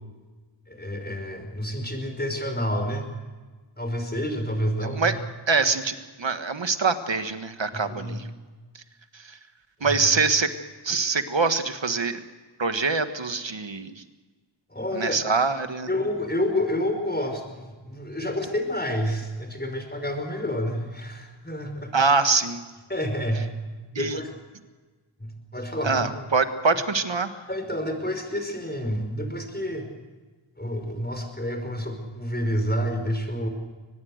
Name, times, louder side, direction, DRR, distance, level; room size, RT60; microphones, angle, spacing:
voice 1, 0.7-3.1 3.8-5.1 7.7-8.2 9.8-10.0 14.7-15.2 15.9-21.9 22.9-23.5 23.9-24.3 25.2-26.2 27.5-29.9 30.6-33.5, equal, 20° left, 5 dB, 5.3 m, -29 dB
voice 2, 4.8-5.2 5.5-8.3 8.7-8.8 9.1-9.4 9.8-10.5 10.8-12.2 12.6-14.0 14.9-15.9 21.9-22.6 23.9-24.2 25.8-27.3, right 4 dB, 65° right, 9 dB, 1.6 m, -24 dB
23.5 x 20.5 x 6.5 m, 1.3 s
wide cardioid pair, 60°, 47 cm